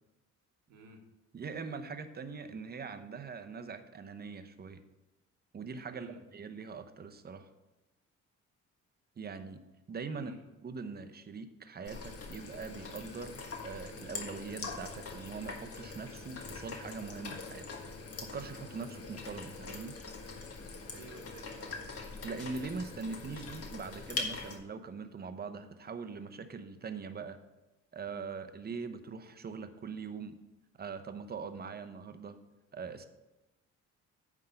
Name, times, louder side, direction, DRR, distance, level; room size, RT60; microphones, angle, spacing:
voice 1, 0.7-1.0 5.9-6.2 10.1-10.4 20.8-21.8, right 3 dB, 85° right, 3 dB, 1.5 m, -53 dB
voice 2, 1.3-4.8 5.5-7.5 9.2-9.6 9.9-10.3 10.6-17.7 18.2-20.0 22.2-27.4 27.9-30.4 30.8-32.4 32.7-33.1, right 5 dB, 30° right, 9 dB, 0.8 m, -42 dB
sound 1, 11.8-24.6, left 4 dB, 50° left, 1.5 m, -43 dB
9.6 x 3.6 x 6.8 m, 1.0 s
cardioid pair, 90°, 30 cm